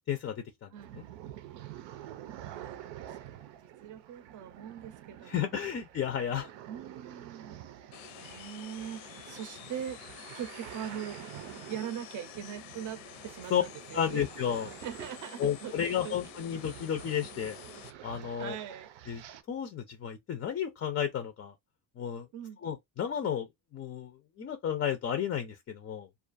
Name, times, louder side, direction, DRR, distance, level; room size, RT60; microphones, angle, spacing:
voice 1, 0.1-0.7 0.9-1.0 5.3-6.5 13.5-13.6 13.9-14.7 15.4-17.6 18.0-18.6 19.1-19.2 19.5-21.5 22.0-22.3 22.6-26.1, left 9 dB, 30° left, 0.4 m, -32 dB
sound 1, 0.8-19.4, right 12 dB, 90° right, 0.6 m, -48 dB
voice 2, 2.4-5.5 6.0-10.0 10.3-11.2 11.7-14.3 14.8-16.2 18.4-18.9 22.3-22.6, right 9 dB, 45° right, 0.6 m, -42 dB
sound 2, 7.9-17.9, left 10 dB, 80° left, 0.7 m, -49 dB
2.4 x 2.3 x 2.4 m
cardioid pair, 135°, 43 cm